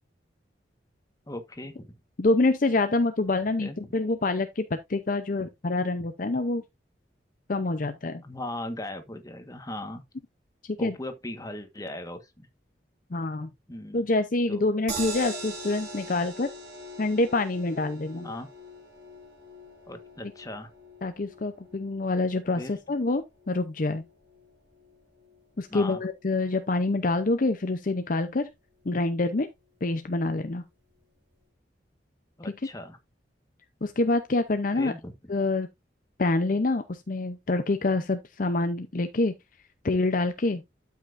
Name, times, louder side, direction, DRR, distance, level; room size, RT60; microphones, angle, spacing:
voice 1, 1.3-2.0 3.6-3.9 5.4-5.5 8.2-10.0 10.8-12.5 13.7-14.0 14.5-14.6 18.2-18.5 19.9-20.7 22.5-22.8 25.7-26.1 32.4-33.0 34.7-35.1, left 1 dB, 20° left, 1.4 m, -38 dB
voice 2, 2.2-6.6 7.5-8.2 10.6-10.9 13.1-13.5 13.9-16.5 17.0-18.3 21.0-24.1 25.6-28.5 28.9-29.5 29.8-30.6 33.8-34.9 35.3-35.7 36.2-39.3 39.8-40.6, left 2 dB, 45° left, 0.6 m, -26 dB
sound 1, 14.9-27.1 27.5-27.6 27.9-28.0, right 2 dB, 65° right, 6.5 m, -43 dB
12.5 x 5.8 x 2.6 m
head